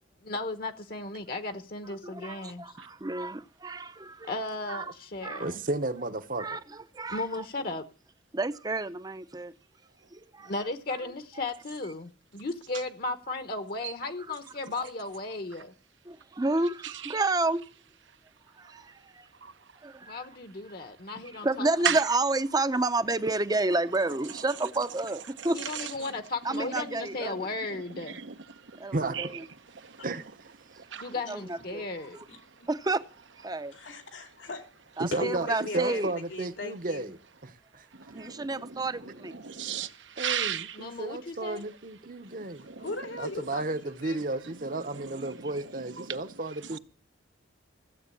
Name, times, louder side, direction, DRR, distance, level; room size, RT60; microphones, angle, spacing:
voice 1, 0.2-2.8 4.3-5.6 7.1-7.8 10.4-15.7 20.1-21.7 25.5-28.2 31.0-32.2 40.7-41.6, left 2 dB, 50° left, 1.0 m, -35 dB
voice 2, 2.0-4.3 4.7-4.9 5.2-5.5 6.4-6.6 7.0-7.4 8.3-9.5 10.1-10.5 16.1-17.6 18.6-18.8 19.2-19.3 19.8-20.2 21.4-25.6 26.4-27.3 28.8-29.3 31.3-31.8 32.1-32.2 32.7-33.0 33.4-33.7 35.0-36.1 38.1-39.3, right 2 dB, 20° right, 0.6 m, -30 dB
voice 3, 5.4-6.5 28.9-29.3 30.0-30.5 35.0-37.9 38.2-38.3 40.2-42.7 43.2-46.8, right 2 dB, 45° right, 1.0 m, -33 dB
voice 4, 16.8-17.1 19.4-19.5 21.8-22.0 25.4-25.9 28.0-28.3 28.7-28.8 29.1-29.3 29.8-30.0 30.8-31.1 38.1-40.8 42.6-42.9 44.9-45.4 46.0-46.2, right 8 dB, 80° right, 1.0 m, -34 dB
voice 5, 32.3-32.7 33.7-34.7 35.1-37.1 42.8-43.6 44.0-44.2, left 2 dB, 90° left, 2.7 m, -38 dB
15.5 x 8.1 x 8.3 m
head